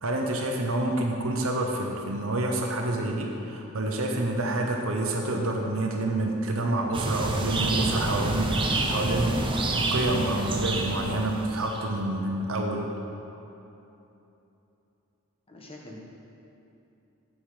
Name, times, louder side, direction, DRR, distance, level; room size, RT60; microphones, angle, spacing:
voice 1, 0.0-9.4 9.9-12.8, right 2 dB, 70° right, 1 dB, 0.9 m, -28 dB
sound 1, 6.9-11.9, right 2 dB, 25° right, 0.7 m, -28 dB
voice 2, 15.5-16.0, left 1 dB, 25° left, -1 dB, 1.2 m, -44 dB
9.0 x 7.7 x 5.0 m, 2.9 s
head